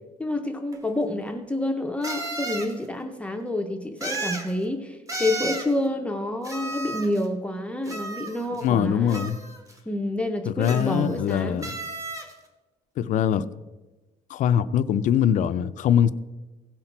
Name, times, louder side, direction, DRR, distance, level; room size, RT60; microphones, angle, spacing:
voice 1, 0.2-9.3 9.9-11.7, left 1 dB, 10° left, 0.5 m, -28 dB
sound 1, 0.7-0.8 2.0-2.7 4.0-4.5 5.1-5.7 6.4-7.2 7.9-8.7 9.1-9.7 10.6-11.3 11.6-12.3, right 2 dB, 20° right, 1.1 m, -33 dB
voice 2, 8.6-9.4 10.5-11.8 13.0-13.5 14.3-16.1, left 9 dB, 60° left, 0.5 m, -22 dB
16.5 x 5.8 x 4.5 m
cardioid pair, 155°, 15 cm